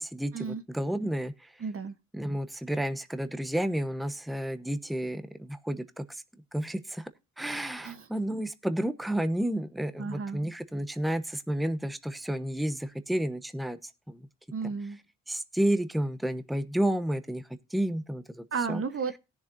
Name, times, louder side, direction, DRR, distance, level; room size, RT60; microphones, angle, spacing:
voice 1, 0.0-1.3 2.1-6.2 6.5-7.1 7.4-13.8 14.1-14.2 14.6-14.7 15.3-17.4 17.7-18.8, right 1 dB, ahead, 0.9 m, -31 dB
voice 2, 1.6-1.9 7.8-8.0 10.0-10.4 14.5-15.0 18.5-19.2, right 5 dB, 45° right, 0.9 m, -33 dB
18.0 x 7.0 x 2.5 m
supercardioid pair, 55°, 32 cm